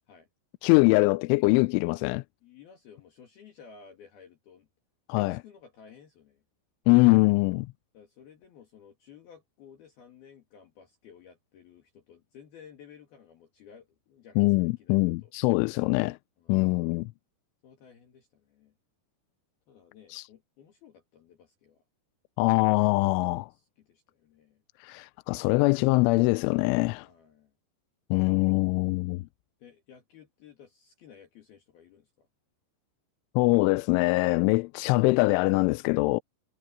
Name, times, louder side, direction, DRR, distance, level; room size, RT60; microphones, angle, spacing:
voice 1, 0.6-2.2 5.1-5.4 6.9-7.7 14.4-16.2 16.5-17.1 20.1-20.2 22.4-23.5 24.9-27.1 28.1-29.2 33.4-36.2, left 24 dB, 85° left, 2.8 m, -23 dB
voice 2, 2.4-4.7 5.1-6.4 7.9-15.3 16.4-17.0 17.6-18.8 19.7-21.8 23.2-24.6 27.0-27.5 28.7-28.8 29.6-32.3, left 7 dB, 55° left, 3.5 m, -54 dB
omnidirectional pair, 5.9 m